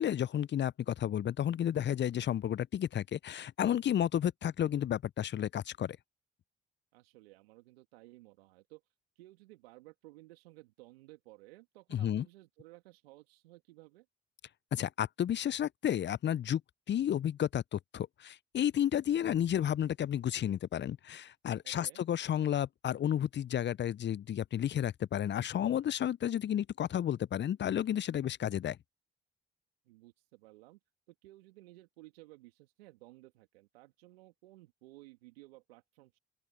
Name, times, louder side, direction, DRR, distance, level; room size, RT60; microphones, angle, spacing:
voice 1, 0.0-6.0 11.9-12.2 14.7-16.6 16.9-28.8, left 10 dB, 35° left, 0.5 m, -32 dB
voice 2, 6.9-8.8 9.2-14.1 21.6-22.0 29.8-30.8 31.1-36.2, right 19 dB, 85° right, 2.9 m, -56 dB
open air
hypercardioid pair, 45°, 30 cm